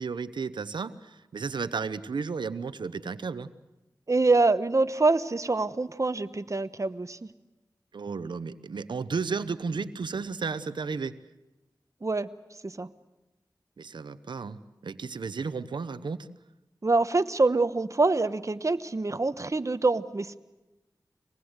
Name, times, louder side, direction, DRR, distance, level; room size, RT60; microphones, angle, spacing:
voice 1, 0.0-3.5 7.9-11.1 13.8-16.3, right 5 dB, 85° right, 13 dB, 0.9 m, -33 dB
voice 2, 4.1-7.2 12.0-12.3 12.6-12.9 16.8-20.4, right 3 dB, 40° right, 12 dB, 1.0 m, -25 dB
25.0 x 20.0 x 8.0 m, 1.0 s
cardioid pair, 40°, 8 cm